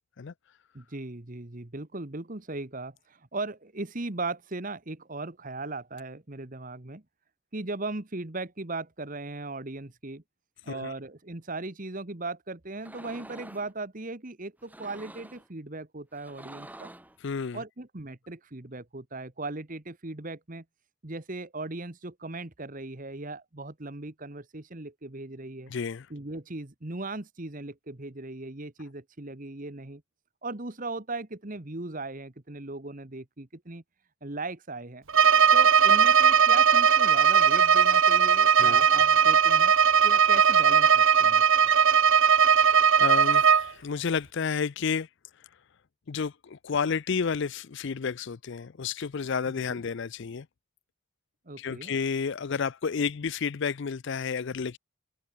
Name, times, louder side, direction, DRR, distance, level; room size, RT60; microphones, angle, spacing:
voice 1, 0.7-7.0 7.5-10.2 10.6-16.9 17.5-20.6 21.0-25.7 26.1-30.0 30.4-33.8 34.2-35.0 35.5-39.7 40.0-41.7 49.5-49.8 51.5-51.9, right 2 dB, 35° right, 1.3 m, -38 dB
sound 1, 12.8-13.7 14.6-15.5 16.1-17.2, right 1 dB, 5° right, 3.0 m, -47 dB
voice 2, 17.2-17.6 25.7-26.1 38.6-38.9 42.6-42.7 43.0-45.1 46.1-50.5 51.6-54.8, left 5 dB, 55° left, 0.4 m, -31 dB
Bowed string instrument, 35.1-43.7, right 7 dB, 60° right, 0.9 m, -19 dB
head